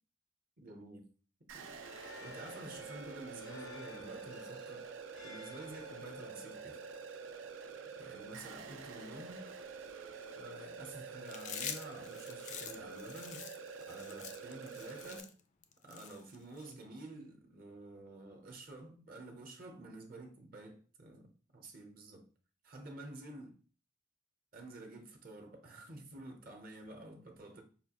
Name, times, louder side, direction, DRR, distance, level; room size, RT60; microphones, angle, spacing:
voice 1, 0.6-1.1 1.5-1.7 2.2-4.9 5.2-6.8 8.0-9.5 10.3-13.5 13.8-15.3 15.8-22.3 22.6-23.5 24.5-27.6, right 2 dB, 45° right, 0.7 m, -50 dB
sound 1, 1.5-15.2, right 5 dB, 80° right, 0.5 m, -47 dB
sound 2, 1.8-9.1, left 2 dB, 85° left, 1.0 m, -56 dB
Chewing mastication, 11.3-16.7, left 8 dB, 35° left, 0.4 m, -46 dB
5.5 x 2.3 x 2.8 m
head